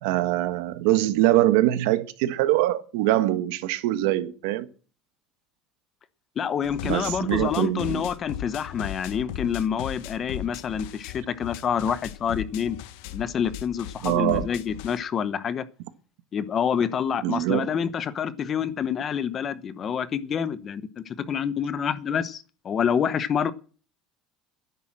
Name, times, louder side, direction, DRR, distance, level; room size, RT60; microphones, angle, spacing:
voice 1, 0.0-4.7 6.8-8.0 14.0-14.5 17.2-17.7, right 15 dB, 85° right, 1.3 m, -23 dB
voice 2, 6.4-12.8 13.1-15.6 16.3-23.5, left 7 dB, 25° left, 0.8 m, -27 dB
sound 1, 6.6-15.0, left 11 dB, 80° left, 1.1 m, -37 dB
11.5 x 10.5 x 7.6 m
cardioid pair, 175°, 0 cm